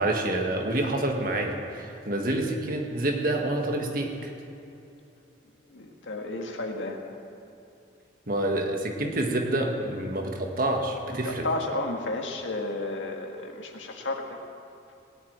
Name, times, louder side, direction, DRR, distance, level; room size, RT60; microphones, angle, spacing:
voice 1, 0.0-4.3 8.3-11.5, right 1 dB, 50° right, 2 dB, 1.7 m, -27 dB
voice 2, 5.7-7.0 11.2-14.4, left 2 dB, 85° left, 2 dB, 1.8 m, -32 dB
18.0 x 8.1 x 8.9 m, 2.7 s
head